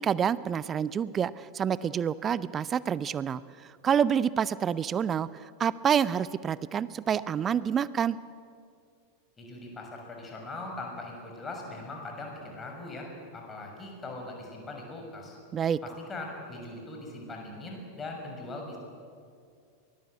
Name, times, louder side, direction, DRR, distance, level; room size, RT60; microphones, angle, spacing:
voice 1, 0.0-8.2 15.5-15.8, right 8 dB, 25° right, 18 dB, 0.6 m, -28 dB
voice 2, 9.4-15.4 15.8-18.8, left 2 dB, 20° left, 1 dB, 6.6 m, -40 dB
23.5 x 20.5 x 8.1 m, 2.3 s
figure-of-eight pair, 90°, 0 cm